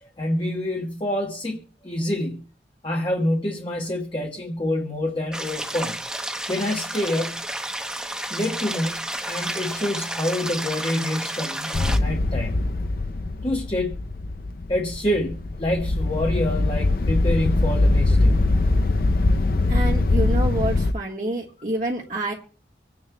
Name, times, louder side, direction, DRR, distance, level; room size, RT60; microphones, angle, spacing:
voice 1, 0.0-2.4 2.8-6.0 6.5-7.4 8.3-12.6 13.4-14.0 14.7-18.4, left 1 dB, 30° left, 1.2 m, -27 dB
sound 1, 5.3-12.0, right 1 dB, 5° right, 0.8 m, -31 dB
sound 2, 11.7-20.9, left 2 dB, 55° left, 0.6 m, -22 dB
voice 2, 19.7-22.3, right 1 dB, 45° right, 1.5 m, -27 dB
25.5 x 9.6 x 2.2 m
head